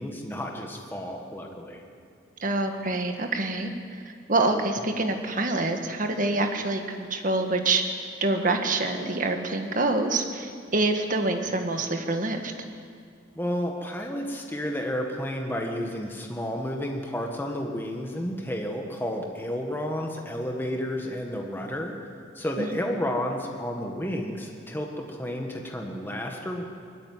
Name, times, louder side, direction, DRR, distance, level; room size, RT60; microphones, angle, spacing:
voice 1, 0.0-1.8 13.3-21.9 22.3-26.6, equal, 10° left, 1 dB, 1.6 m, -31 dB
voice 2, 2.4-4.0 4.3-7.8 8.2-12.5 22.6-22.7, right 2 dB, 45° right, 5 dB, 1.7 m, -26 dB
20.5 x 14.0 x 9.6 m, 2.2 s
head